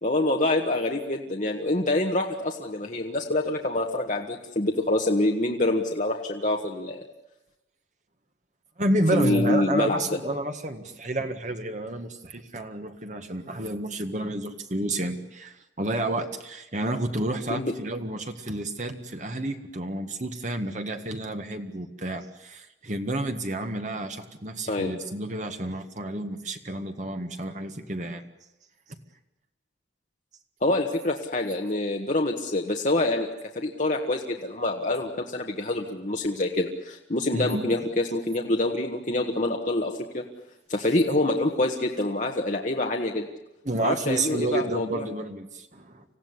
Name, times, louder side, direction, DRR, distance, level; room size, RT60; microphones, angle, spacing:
voice 1, 0.0-7.0 9.1-10.2 17.5-17.7 24.7-24.9 30.6-33.3 33.6-40.2 40.7-43.3 43.8-45.1, left 2 dB, 45° left, 1 dB, 1.6 m, -26 dB
voice 2, 8.8-28.2 37.3-37.8 43.6-46.0, right 1 dB, 40° right, 6 dB, 1.9 m, -30 dB
26.0 x 16.0 x 9.8 m, 0.94 s
head